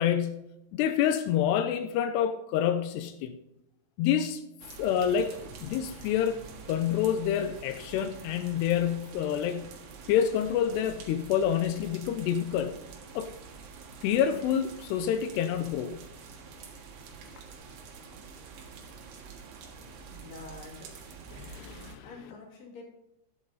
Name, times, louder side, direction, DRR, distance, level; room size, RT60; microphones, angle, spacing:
voice 1, 0.0-3.4 4.0-4.4 4.8-6.4 6.7-9.7 10.1-12.8 13.2-13.3 14.0-16.0 21.3-22.1, left 9 dB, 90° left, 2.9 m, -28 dB
sound 1, 4.6-22.0, right 5 dB, 65° right, 3.2 m, -47 dB
voice 2, 20.0-21.2 22.0-22.8, left 3 dB, 45° left, 3.4 m, -47 dB
12.0 x 10.0 x 4.0 m
omnidirectional pair, 4.7 m